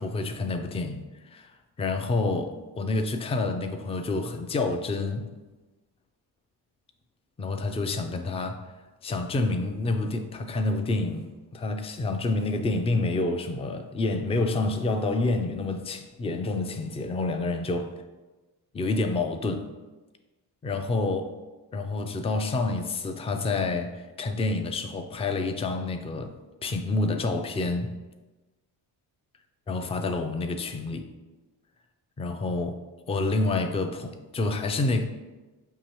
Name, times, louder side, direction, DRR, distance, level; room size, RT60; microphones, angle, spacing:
voice 1, 0.0-5.3 7.4-8.6 9.0-17.9 18.7-19.7 20.6-21.3 21.7-27.9 29.7-31.1 32.2-32.8 33.1-35.0, left 2 dB, 15° left, 0.3 m, -28 dB
5.6 x 2.6 x 3.0 m
supercardioid pair, 55°, 47 cm